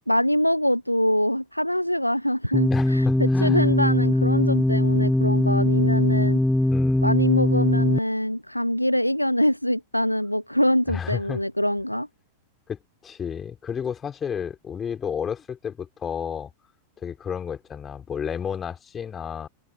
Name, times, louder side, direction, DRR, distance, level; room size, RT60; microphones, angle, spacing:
voice 1, 0.1-6.4 7.0-12.1, equal, 90° left, 0.8 m, -24 dB
sound 1, 2.5-8.0, left 1 dB, 5° left, 1.6 m, -21 dB
voice 2, 2.7-3.7 6.7-7.0 10.9-11.4 12.7-16.5 17.0-19.5, left 7 dB, 20° left, 4.9 m, -32 dB
figure-of-eight pair, 90°, 0 cm